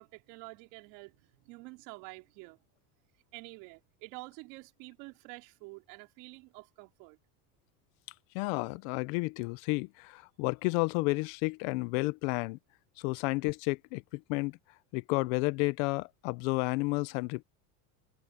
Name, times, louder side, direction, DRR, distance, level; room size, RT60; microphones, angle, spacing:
voice 1, 0.0-2.6 3.3-7.2, right 26 dB, 65° right, 3.1 m, -48 dB
voice 2, 8.3-12.6 13.0-14.5 14.9-17.4, left 26 dB, 65° left, 0.8 m, -31 dB
supercardioid pair, 145°, 43 cm